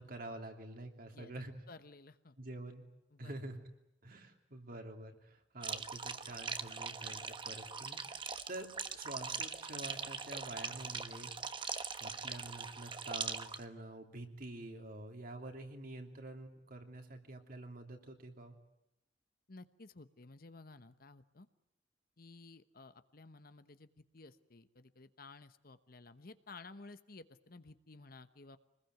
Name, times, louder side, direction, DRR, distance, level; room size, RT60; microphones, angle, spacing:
voice 1, 0.0-1.5 2.4-2.9 3.2-3.6 4.0-11.3 12.0-18.6, right 1 dB, 50° right, 4 dB, 2.9 m, -47 dB
voice 2, 1.7-2.4 3.1-3.3 19.5-21.5 22.2-28.6, left 3 dB, 50° left, 11 dB, 1.1 m, -55 dB
sound 1, 5.6-13.6, right 5 dB, 25° right, 1.1 m, -42 dB
26.0 x 20.5 x 9.3 m, 0.86 s
head